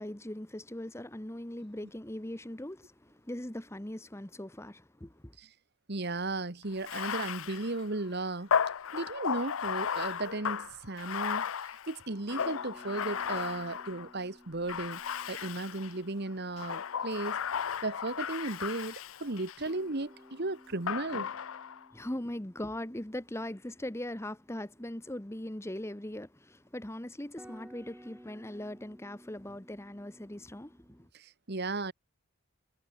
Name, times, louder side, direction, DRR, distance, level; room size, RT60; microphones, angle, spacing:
voice 1, 0.0-5.3 21.9-31.1, left 1 dB, 10° left, 1.1 m, -40 dB
voice 2, 5.9-8.5 8.9-11.5 11.9-15.0 15.3-17.4 17.8-21.3 31.1-31.9, right 2 dB, 50° right, 1.5 m, -35 dB
Bathtub (filling or washing), 6.8-14.1 14.7-16.0 16.5-19.7 20.9-21.8, left 7 dB, 75° left, 0.6 m, -35 dB
sound 1, 12.3-17.6 19.7-26.3 27.0-27.1 27.4-31.1, equal, 5° right, 1.6 m, -57 dB
head